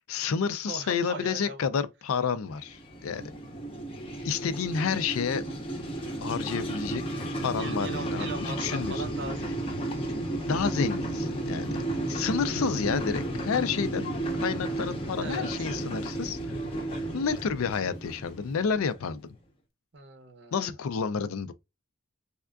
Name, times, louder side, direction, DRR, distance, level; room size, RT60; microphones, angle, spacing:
voice 1, 0.1-3.3 4.2-5.4 6.2-7.0 7.4-9.1 10.5-11.7 12.1-16.6 17.1-19.3 20.5-21.5, left 6 dB, 80° left, 0.4 m, -30 dB
voice 2, 0.6-1.7 7.6-9.9 15.2-15.7 19.9-20.7, right 3 dB, 55° right, 0.7 m, -40 dB
sound 1, 2.5-19.2, right 1 dB, 25° left, 0.6 m, -33 dB
3.5 x 2.4 x 2.2 m
head